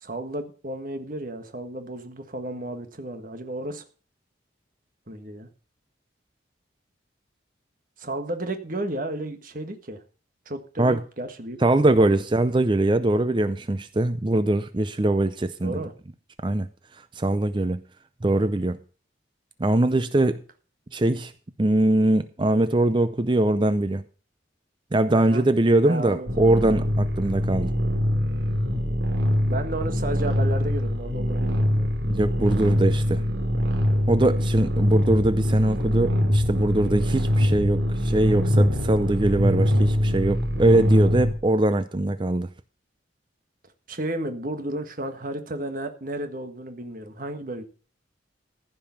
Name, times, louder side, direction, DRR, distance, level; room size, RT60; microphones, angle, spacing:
voice 1, 0.0-3.8 5.1-5.5 8.0-10.0 10.4-11.6 15.6-15.9 25.1-25.4 25.8-26.3 29.5-31.9 43.9-47.6, right 1 dB, 45° right, 1.6 m, -33 dB
voice 2, 11.6-15.8 16.4-16.7 17.2-17.8 18.2-18.8 19.6-20.4 20.9-21.3 21.6-24.0 24.9-27.7 32.1-33.2 34.1-42.5, right 1 dB, 25° right, 0.5 m, -22 dB
sound 1, 26.3-41.3, equal, 70° right, 2.6 m, -23 dB
15.0 x 5.4 x 7.0 m
head